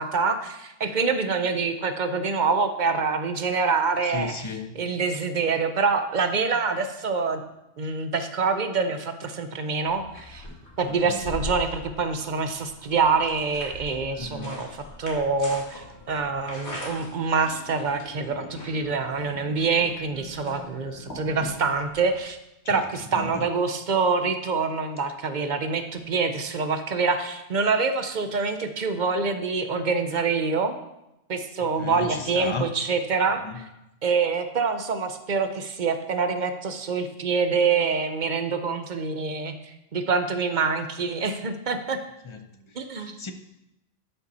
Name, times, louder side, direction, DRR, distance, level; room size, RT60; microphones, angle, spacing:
voice 1, 0.0-4.5 4.7-7.4 7.8-10.5 10.8-22.4 22.7-30.7 31.3-33.6 34.0-39.5 39.9-42.0 42.8-43.1, right 4 dB, 50° right, 8 dB, 0.8 m, -26 dB
voice 2, 4.1-4.7 11.1-11.2 14.2-14.5 22.7-22.8 23.1-23.3 31.8-32.7 33.4-33.6 42.3-42.4 43.0-43.3, left 4 dB, 30° left, 7 dB, 0.6 m, -34 dB
sound 1, 9.8-22.2, left 1 dB, 75° left, 2.4 m, -41 dB
12.0 x 5.6 x 4.1 m, 0.88 s
omnidirectional pair, 1.1 m